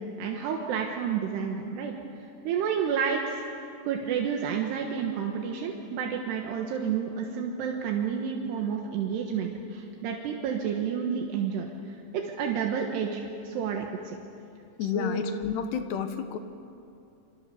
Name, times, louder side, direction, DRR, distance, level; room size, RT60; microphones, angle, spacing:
voice 1, 0.0-14.2 14.9-15.2, right 7 dB, 80° right, 1 dB, 3.5 m, -30 dB
voice 2, 14.8-16.4, left 7 dB, 80° left, 8 dB, 3.3 m, -30 dB
28.0 x 25.5 x 7.0 m, 2.6 s
omnidirectional pair, 4.8 m